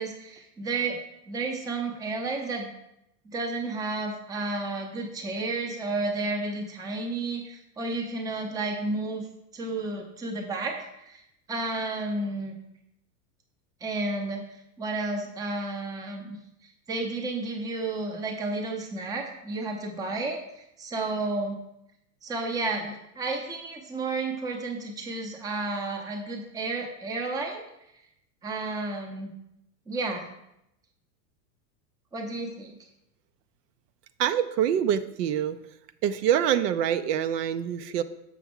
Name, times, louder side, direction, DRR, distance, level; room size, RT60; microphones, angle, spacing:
voice 1, 0.0-2.7 3.2-9.2 9.5-11.2 11.5-12.5 13.8-14.4 14.8-16.4 16.6-21.6 22.2-27.6 28.4-29.3 29.9-30.3 32.1-32.7, right 3 dB, 10° right, 2 dB, 0.5 m, -32 dB
voice 2, 34.2-35.6 36.0-38.0, right 9 dB, 80° right, 11 dB, 0.6 m, -25 dB
7.1 x 6.0 x 3.6 m, 0.84 s
supercardioid pair, 150°, 47 cm